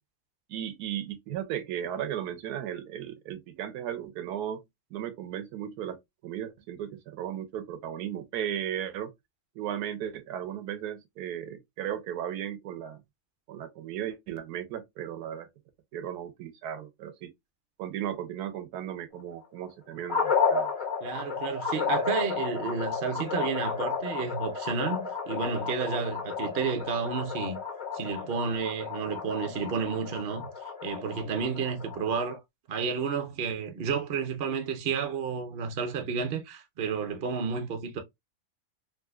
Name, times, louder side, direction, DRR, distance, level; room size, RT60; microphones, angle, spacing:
voice 1, 0.5-4.6 4.9-6.0 6.2-9.1 9.6-13.0 13.5-15.5 15.9-17.3 17.8-20.7, right 10 dB, 85° right, 1.1 m, -35 dB
sound 1, 20.1-32.3, left 5 dB, 20° left, 1.5 m, -32 dB
voice 2, 21.0-27.6 27.9-30.5 30.8-32.4 32.7-38.0, right 5 dB, 60° right, 0.6 m, -31 dB
3.7 x 2.7 x 2.3 m
omnidirectional pair, 1.7 m